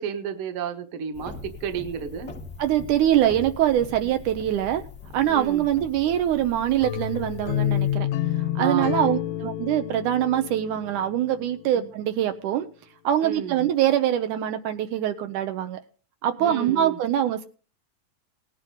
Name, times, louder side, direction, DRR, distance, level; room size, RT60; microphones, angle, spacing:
voice 1, 0.0-2.3 4.0-4.1 5.3-5.7 8.6-9.2 11.7-11.9 13.2-13.6 16.4-17.0, right 7 dB, 50° right, 7 dB, 1.9 m, -32 dB
sound 1, 1.1-8.0, left 4 dB, 35° left, 1.1 m, -42 dB
voice 2, 2.6-4.8 5.1-8.1 8.6-12.7 13.0-15.8 16.2-17.5, right 11 dB, 80° right, 8 dB, 2.3 m, -23 dB
sound 2, 6.8-11.7, left 12 dB, 80° left, 2.3 m, -28 dB
18.5 x 9.4 x 3.8 m, 0.37 s
omnidirectional pair, 3.7 m